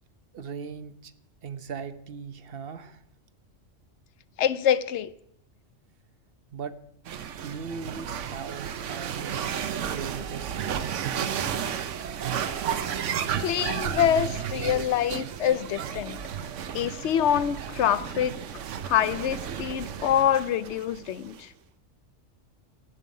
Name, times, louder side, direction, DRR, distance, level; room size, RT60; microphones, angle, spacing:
voice 1, 0.3-1.1 1.4-3.0 6.5-6.8 7.4-9.4 9.9-11.1, right 6 dB, 55° right, 0.8 m, -39 dB
voice 2, 4.4-5.1 13.4-16.2 16.7-18.4 18.9-21.5, left 10 dB, 70° left, 0.9 m, -25 dB
sound 1, 7.1-21.4, right 8 dB, 75° right, 1.1 m, -33 dB
17.0 x 7.4 x 5.4 m
omnidirectional pair, 1.3 m